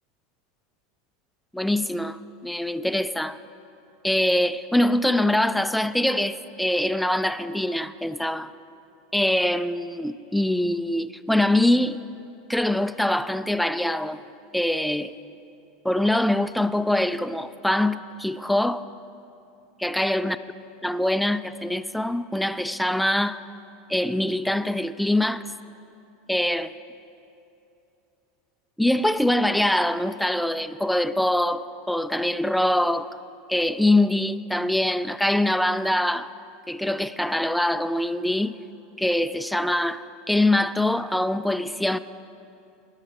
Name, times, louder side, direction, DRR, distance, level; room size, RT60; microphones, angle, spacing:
voice 1, 1.5-3.4 4.0-8.5 9.1-12.0 12.5-14.2 14.5-15.1 15.8-18.8 19.8-20.4 20.8-23.4 23.9-25.4 26.3-26.7 28.8-33.1 33.5-36.3 36.7-38.5 39.0-42.0, left 1 dB, ahead, 0.3 m, -23 dB
19.5 x 6.5 x 4.8 m
figure-of-eight pair, 80°, 0 cm